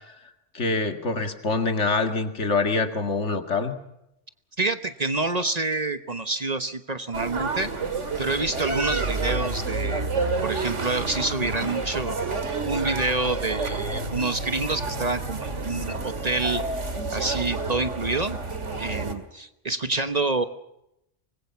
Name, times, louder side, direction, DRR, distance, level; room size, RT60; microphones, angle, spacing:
voice 1, 0.5-3.8, left 3 dB, 75° left, 7 dB, 2.4 m, -25 dB
voice 2, 4.6-7.7 8.2-10.1 10.4-12.2 12.6-16.6 17.1-18.4 18.8-20.5, right 3 dB, 35° right, 11 dB, 1.1 m, -27 dB
sound 1, 7.1-19.1, right 3 dB, 80° right, 2.6 m, -29 dB
25.0 x 20.5 x 7.1 m, 0.83 s
omnidirectional pair, 1.2 m